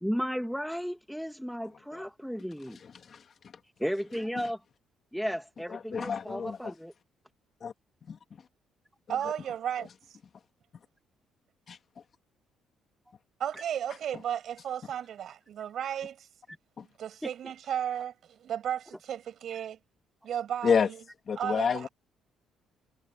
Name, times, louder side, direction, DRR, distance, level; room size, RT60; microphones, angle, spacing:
voice 1, 0.0-2.8 3.8-4.6 5.1-6.9 17.2-17.3, equal, ahead, 1.6 m, -34 dB
voice 2, 5.7-6.7 7.6-7.7 8.1-8.2 11.7-11.8 16.8-16.9 20.6-20.9 21.3-21.9, left 6 dB, 45° left, 2.0 m, -28 dB
voice 3, 9.1-10.2 13.4-16.3 17.0-19.8 20.2-21.0 21.4-21.9, right 9 dB, 60° right, 7.1 m, -34 dB
cardioid pair, 100°, 0 cm